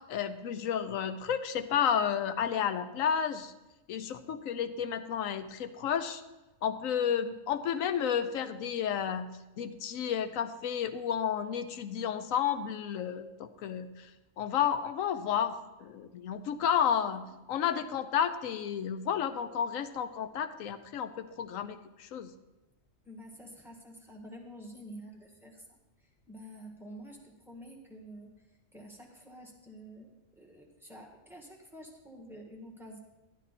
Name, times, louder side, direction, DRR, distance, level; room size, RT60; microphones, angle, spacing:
voice 1, 0.1-3.5 3.9-6.2 6.6-9.3 9.6-13.9 14.4-22.3, left 8 dB, 85° left, 11 dB, 1.0 m, -31 dB
voice 2, 23.0-25.8 26.3-28.3 28.7-33.0, equal, ahead, 0 dB, 1.5 m, -49 dB
11.5 x 10.5 x 4.1 m, 1.1 s
omnidirectional pair, 1.4 m